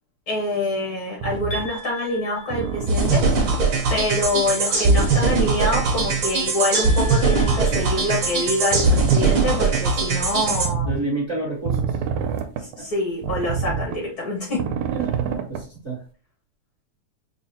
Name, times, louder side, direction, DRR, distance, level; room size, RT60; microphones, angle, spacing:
voice 1, 0.3-3.6 3.9-10.9 12.6-14.8, left 1 dB, 75° left, -3 dB, 0.8 m, -26 dB
sound 1, 1.2-1.7 2.5-3.8 4.9-5.1 5.3-5.5 5.8-6.2 7.4-8.2 8.7-9.8 10.4-11.0 11.7-12.8 13.2-14.1 14.5-15.6, right 7 dB, 80° right, 1.8 m, -27 dB
sound 2, 1.5-3.2 6.7-8.8, equal, 40° left, 0.7 m, -37 dB
sound 3, 2.9-10.7, right 4 dB, 55° right, 1.5 m, -21 dB
voice 2, 10.8-12.0 12.8-12.9 14.9-16.0, right 2 dB, 40° right, -6 dB, 1.0 m, -29 dB
6.0 x 2.1 x 2.8 m, 0.37 s
omnidirectional pair, 3.3 m